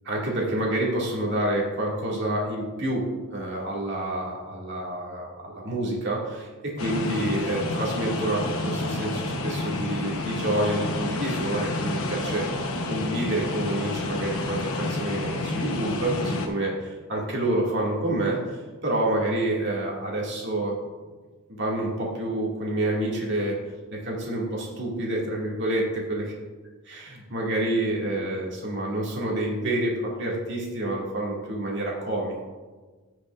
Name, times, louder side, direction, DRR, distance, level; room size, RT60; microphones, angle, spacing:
voice 1, 0.1-3.0 3.3-6.5 6.8-20.7 21.5-23.6 23.9-26.3 27.3-32.4, right 1 dB, 55° right, -3 dB, 2.3 m, -28 dB
sound 1, 6.8-16.5, left 2 dB, 80° left, 1.1 m, -29 dB
16.5 x 6.0 x 2.6 m, 1.3 s
head